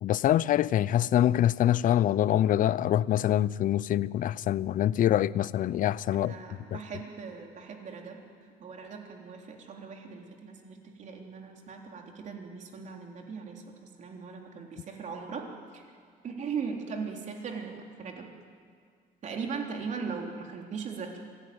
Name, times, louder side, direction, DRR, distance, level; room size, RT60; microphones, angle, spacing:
voice 1, 0.0-6.3 6.7-6.8, left 11 dB, 50° left, 20 dB, 0.5 m, -25 dB
voice 2, 6.2-8.2 8.6-15.5 15.7-15.9 16.2-18.3 19.2-21.2, right 5 dB, 45° right, 1 dB, 3.6 m, -39 dB
26.0 x 17.5 x 9.7 m, 2.1 s
cardioid pair, 160°, 17 cm